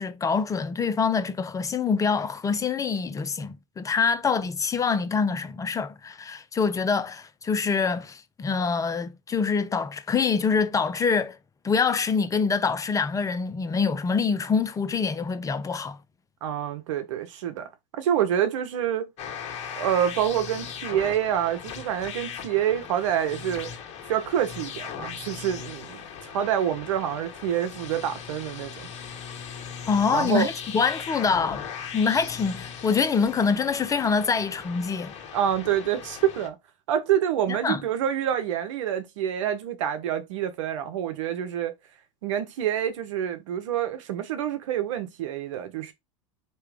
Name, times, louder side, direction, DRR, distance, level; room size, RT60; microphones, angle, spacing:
voice 1, 0.0-11.4 11.6-16.0 29.9-35.1 37.5-37.8, left 5 dB, 20° left, 0.5 m, -25 dB
voice 2, 16.4-17.7 17.9-19.1 19.8-23.7 24.1-28.9 30.1-30.5 35.3-36.6 36.9-41.7 42.2-45.9, right 10 dB, 70° right, 1.0 m, -27 dB
sound 1, 19.2-36.5, left 7 dB, 45° left, 1.5 m, -39 dB
4.6 x 3.1 x 3.4 m
hypercardioid pair, 90°, 17 cm